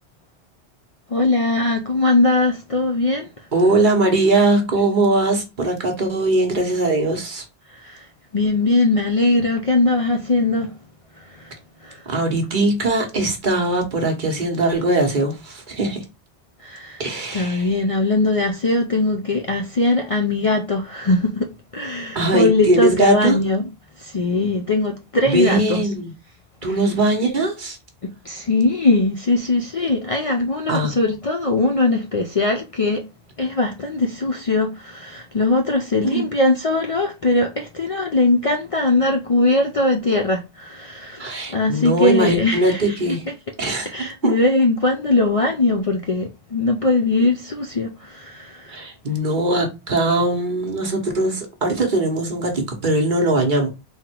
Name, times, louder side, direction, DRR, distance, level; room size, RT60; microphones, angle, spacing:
voice 1, 1.1-3.5 7.7-8.1 8.3-10.7 11.2-11.5 11.8-12.0 16.6-17.0 17.3-23.6 24.0-25.8 28.0-33.0 33.4-43.0 43.9-48.8, left 2 dB, 45° left, 0.4 m, -20 dB
voice 2, 3.5-7.4 12.1-16.1 17.0-17.7 22.1-23.4 25.3-26.1 26.6-27.8 30.7-30.9 36.0-36.3 41.2-43.2 43.6-44.4 48.7-53.7, right 2 dB, 50° right, 1.1 m, -20 dB
3.8 x 2.2 x 4.4 m
omnidirectional pair, 1.1 m